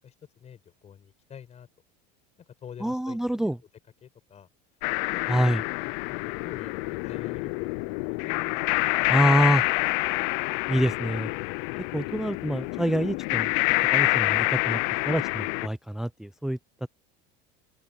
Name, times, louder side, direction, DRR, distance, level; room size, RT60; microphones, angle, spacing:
voice 1, 0.0-1.7 2.6-3.6 4.0-4.5 5.1-9.9, left 8 dB, 30° left, 5.8 m, -47 dB
voice 2, 2.8-3.6 5.3-5.6 9.1-9.6 10.7-11.3 11.9-13.5 13.9-14.8 15.1-16.6, right 1 dB, ahead, 0.4 m, -26 dB
sound 1, 4.8-15.7, left 27 dB, 70° left, 0.5 m, -27 dB
open air
supercardioid pair, 130°, 21 cm